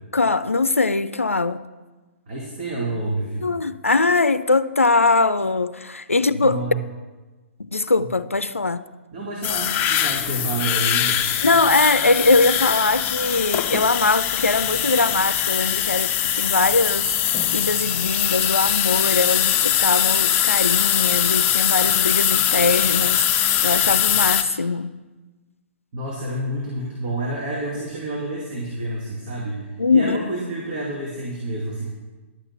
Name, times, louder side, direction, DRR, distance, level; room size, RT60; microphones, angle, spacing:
voice 1, 0.1-1.6 3.4-6.6 7.6-8.8 11.4-25.0 29.8-30.2, left 3 dB, 85° left, 0.4 m, -21 dB
voice 2, 2.3-3.5 6.3-6.8 8.0-8.1 9.1-11.2 25.9-31.9, right 1 dB, 40° right, 2.4 m, -29 dB
sound 1, 9.4-24.4, left 10 dB, 25° left, 0.6 m, -21 dB
11.5 x 6.7 x 6.8 m
figure-of-eight pair, 125°, 7 cm